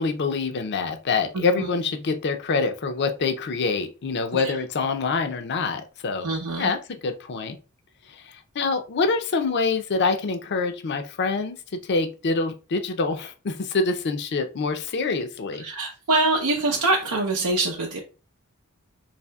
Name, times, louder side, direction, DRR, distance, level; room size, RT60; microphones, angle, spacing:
voice 1, 0.0-6.3 6.6-6.8 7.0-7.6 8.1-11.6 11.8-15.6, left 4 dB, 55° left, 7 dB, 0.5 m, -25 dB
voice 2, 1.3-1.7 4.3-4.5 6.2-6.7 15.6-18.0, right 2 dB, 90° right, -1 dB, 0.7 m, -24 dB
4.1 x 2.8 x 2.2 m, 0.33 s
head